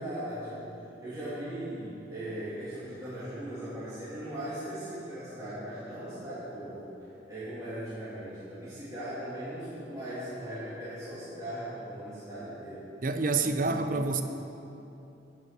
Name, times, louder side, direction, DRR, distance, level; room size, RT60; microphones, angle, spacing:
voice 1, 0.0-6.8 7.3-12.8 13.4-13.8, right 1 dB, 20° right, -13 dB, 2.9 m, -39 dB
voice 2, 13.0-14.2, right 3 dB, 50° right, 8 dB, 0.6 m, -27 dB
16.0 x 5.6 x 6.1 m, 2.9 s
head